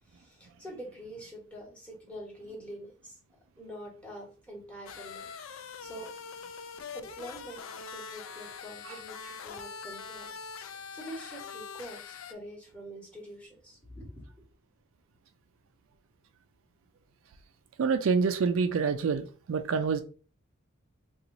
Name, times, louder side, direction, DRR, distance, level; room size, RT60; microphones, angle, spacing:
voice 1, 0.1-3.2 3.6-6.1 6.9-7.6 7.9-14.3, equal, 5° left, 1.3 m, -45 dB
sound 1, 4.9-12.3, left 6 dB, 65° left, 0.4 m, -43 dB
voice 2, 17.8-20.0, right 5 dB, 65° right, 0.3 m, -27 dB
3.0 x 2.4 x 3.8 m
head